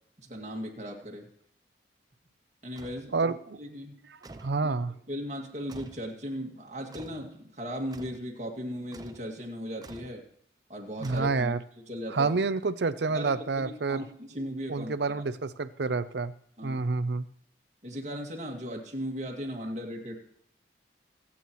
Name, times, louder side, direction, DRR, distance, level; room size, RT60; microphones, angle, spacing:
voice 1, 0.2-1.3 2.6-3.3 3.6-3.9 4.6-4.7 5.1-10.2 10.7-11.6 11.9-12.3 13.1-14.9 16.6-16.9 17.8-20.2, equal, 40° right, 1 dB, 2.1 m, -37 dB
sound 1, 2.8-3.1 4.2-4.6 5.7-6.1 6.9-7.3 7.9-8.3 8.9-9.3 9.8-10.2 11.0-11.7, right 2 dB, 20° right, 0.5 m, -47 dB
voice 2, 3.1-3.6 4.4-4.9 11.0-11.6 12.1-14.1 14.7-16.3 16.6-17.3, right 4 dB, 70° right, 13 dB, 0.6 m, -28 dB
25.0 x 8.6 x 3.1 m, 0.69 s
head